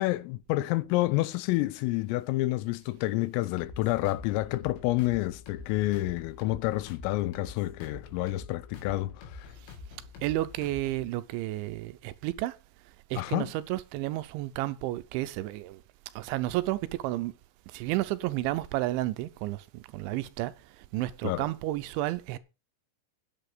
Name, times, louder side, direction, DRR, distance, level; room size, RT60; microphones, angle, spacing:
voice 1, 0.0-9.5 13.2-13.5 21.2-21.5, left 18 dB, 85° left, 3.4 m, -29 dB
sound 1, 3.6-11.1, left 4 dB, 70° left, 5.2 m, -46 dB
voice 2, 9.9-12.6 13.1-15.8 16.2-17.3 17.7-22.4, right 16 dB, 80° right, 2.9 m, -32 dB
10.0 x 8.9 x 6.7 m
omnidirectional pair, 5.8 m